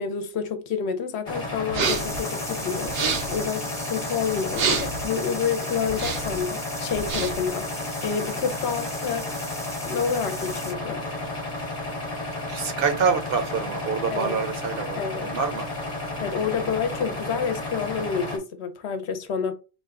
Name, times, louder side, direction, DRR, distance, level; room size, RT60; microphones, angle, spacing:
voice 1, 0.0-2.9 3.3-9.3 9.8-11.0 14.1-14.5 14.9-15.3 16.2-19.5, left 6 dB, 75° left, 0.9 m, -29 dB
sound 1, 1.3-18.4, left 2 dB, 35° left, 0.9 m, -32 dB
sound 2, 1.7-2.2 2.8-3.4 4.5-5.0 5.9-6.4 6.9-7.5, right 5 dB, 90° right, 1.0 m, -27 dB
sound 3, 1.8-10.7, left 1 dB, 5° left, 0.5 m, -38 dB
voice 2, 12.5-15.7, right 5 dB, 65° right, 0.7 m, -26 dB
3.9 x 2.2 x 3.6 m
omnidirectional pair, 1.1 m